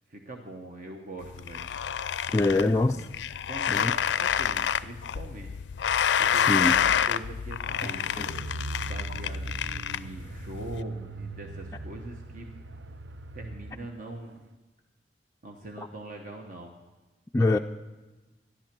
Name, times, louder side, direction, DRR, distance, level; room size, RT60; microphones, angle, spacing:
voice 1, 0.1-1.7 2.3-3.1 3.5-5.5 6.2-8.3 8.8-12.5 13.3-14.4 15.4-16.7, right 1 dB, 50° right, 2 dB, 1.1 m, -43 dB
sound 1, 1.2-10.8, left 8 dB, 90° left, 0.4 m, -28 dB
voice 2, 2.3-3.0 3.7-3.9 6.3-6.8 8.2-8.3 15.8-15.9 17.3-17.6, left 2 dB, 15° left, 2 dB, 0.3 m, -24 dB
Car, 7.7-13.8 14.1-14.2, right 2 dB, 80° right, 0.7 m, -39 dB
13.5 x 11.5 x 6.0 m, 1.2 s
head